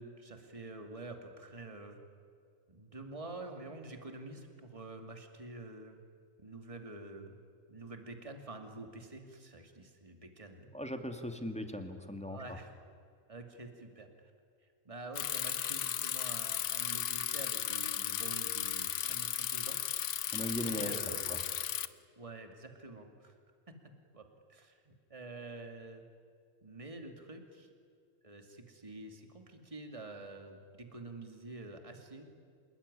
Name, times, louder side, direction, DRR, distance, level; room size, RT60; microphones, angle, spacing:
voice 1, 0.0-2.0 2.7-6.0 6.4-7.3 7.7-10.7 12.3-12.7 13.3-14.3 14.8-20.1 20.4-21.2 22.2-23.4 24.1-24.2 24.5-26.1 26.6-27.7 28.2-32.3, right 2 dB, 25° right, 5 dB, 2.5 m, -47 dB
voice 2, 10.7-12.6 20.3-21.4, left 1 dB, 5° left, 5 dB, 2.2 m, -39 dB
Bicycle, 15.2-21.9, left 10 dB, 65° left, 1.1 m, -35 dB
27.0 x 21.0 x 9.9 m, 2.3 s
omnidirectional pair, 1.4 m